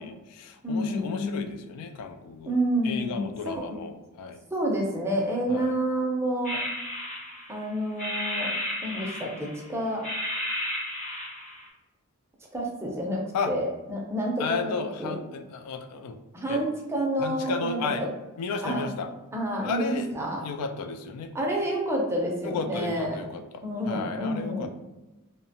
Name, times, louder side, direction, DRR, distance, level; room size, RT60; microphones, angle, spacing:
voice 1, 0.0-2.6 2.8-4.4 5.5-5.8 13.3-13.5 14.4-16.2 16.5-16.6 17.2-18.1 18.4-19.1 19.6-20.1 20.4-21.3 22.4-24.7, left 4 dB, 90° left, 12 dB, 0.3 m, -33 dB
voice 2, 0.6-1.4 2.5-3.8 4.5-6.6 7.5-8.5 8.8-10.1 12.5-15.2 16.3-18.1 18.6-18.9 19.3-20.4 21.3-23.2 23.6-24.7, right 1 dB, 10° right, -1 dB, 0.4 m, -29 dB
sound 1, 6.4-7.6 8.0-9.6 10.0-11.7, left 1 dB, 35° left, 0.7 m, -33 dB
2.7 x 2.1 x 2.7 m, 1.1 s
head